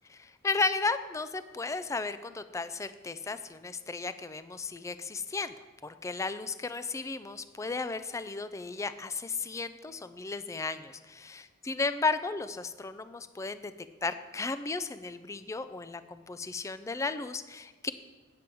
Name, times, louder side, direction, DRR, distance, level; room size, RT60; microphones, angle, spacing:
voice 1, 0.2-5.5 5.8-13.7 14.0-17.9, left 4 dB, 15° left, 12 dB, 0.3 m, -34 dB
8.6 x 7.6 x 4.5 m, 1.3 s
head